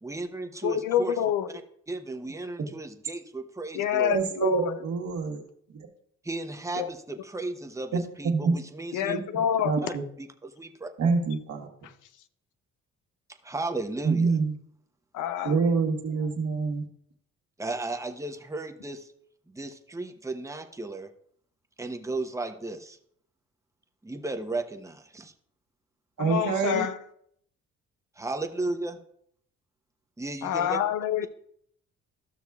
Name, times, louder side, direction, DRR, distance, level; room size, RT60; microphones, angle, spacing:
voice 1, 0.0-1.1 1.9-4.2 6.2-9.1 9.8-9.9 10.2-10.9 13.4-14.3 17.6-19.1 19.5-21.1 21.8-23.0 24.0-25.3 28.2-29.0 30.2-30.8, right 2 dB, 10° right, 5 dB, 0.9 m, -34 dB
voice 2, 0.6-1.5 3.7-4.8 6.8-6.9 8.9-9.7 15.1-15.6 26.2-27.0 30.4-31.3, left 10 dB, 85° left, 12 dB, 0.7 m, -27 dB
voice 3, 4.0-5.4 5.7-5.9 7.9-8.5 9.1-10.0 11.0-11.7 14.0-14.5 15.4-16.8 26.2-26.9, right 4 dB, 65° right, 2 dB, 1.7 m, -26 dB
14.0 x 6.2 x 2.4 m, 0.68 s
cardioid pair, 90°, 30 cm